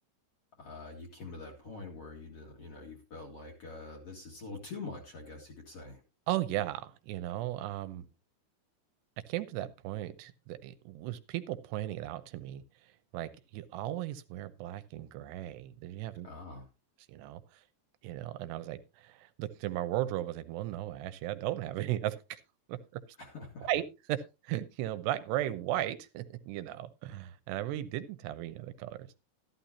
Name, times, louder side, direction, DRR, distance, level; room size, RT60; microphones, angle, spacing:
voice 1, 0.6-6.0 16.2-16.6 23.2-23.7, left 3 dB, 45° left, 1 dB, 2.4 m, -45 dB
voice 2, 6.3-8.1 9.3-16.3 17.1-17.6 18.0-22.4 22.7-23.0 23.6-29.2, right 14 dB, 80° right, 12 dB, 2.8 m, -36 dB
13.5 x 11.5 x 2.8 m, 0.28 s
omnidirectional pair, 4.9 m